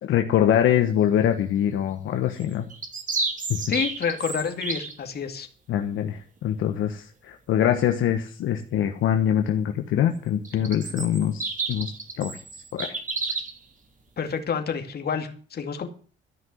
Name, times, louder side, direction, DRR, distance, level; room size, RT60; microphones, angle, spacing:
voice 1, 0.0-2.7 3.5-3.6 5.7-11.9 12.2-12.3 12.7-12.9, left 10 dB, 80° left, 5 dB, 1.3 m, -24 dB
sound 1, 2.4-4.9 10.4-13.6, right 3 dB, 40° right, 2.7 m, -31 dB
voice 2, 3.7-5.5 14.2-15.9, left 6 dB, 55° left, 6 dB, 2.4 m, -28 dB
14.0 x 6.1 x 9.5 m, 0.42 s
cardioid pair, 90°, 20 cm